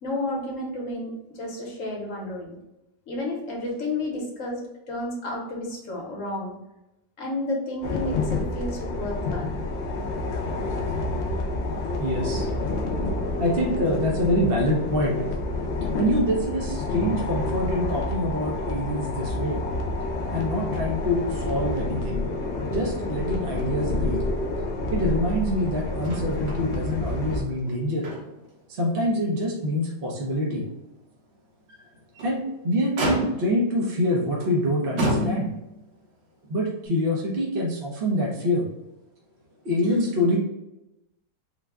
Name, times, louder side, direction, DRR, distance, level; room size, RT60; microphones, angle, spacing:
voice 1, 0.0-2.6 3.1-4.6 4.9-6.5 7.2-9.5, left 2 dB, 55° left, -1 dB, 1.1 m, -31 dB
sound 1, 7.8-27.4, left 2 dB, 75° left, 0.6 m, -28 dB
voice 2, 12.0-12.5 13.4-15.2 16.0-19.6 20.3-22.2 22.7-24.2 24.9-28.1 28.7-30.6 31.7-31.8 32.2-35.5 36.5-38.7 39.6-40.4, left 1 dB, 50° right, -3 dB, 0.7 m, -25 dB
Motor vehicle (road), 26.0-26.6 27.0-27.1 27.6-28.5 29.0-29.1 29.6-29.7 31.9-32.4 33.0-33.6 34.4-34.6 35.0-35.8 36.8-36.9, right 1 dB, 85° right, 1.7 m, -29 dB
3.8 x 2.2 x 3.5 m, 0.91 s
omnidirectional pair, 1.9 m